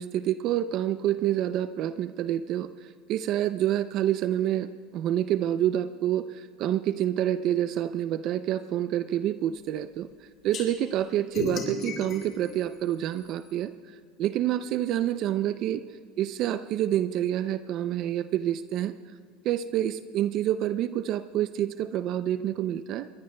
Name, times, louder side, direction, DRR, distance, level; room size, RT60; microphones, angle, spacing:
voice 1, 0.0-10.1 10.4-13.7 14.2-15.8 16.2-18.9 19.4-23.1, right 11 dB, 55° right, 12 dB, 0.4 m, -28 dB
sound 1, 10.5-10.6 11.3-13.5, left 4 dB, 50° left, 3.8 m, -35 dB
22.0 x 21.0 x 2.2 m, 2.2 s
supercardioid pair, 110°, 0 cm